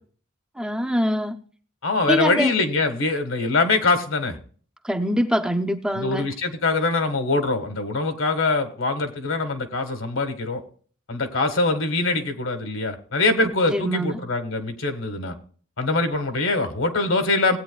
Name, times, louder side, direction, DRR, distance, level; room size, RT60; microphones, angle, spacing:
voice 1, 0.6-1.4 2.1-2.5 4.8-6.2 13.7-14.2, equal, 5° right, 0.6 m, -24 dB
voice 2, 1.8-4.4 5.9-10.6 11.1-15.3 15.8-17.6, left 3 dB, 75° left, 1.7 m, -23 dB
18.0 x 8.8 x 2.3 m
head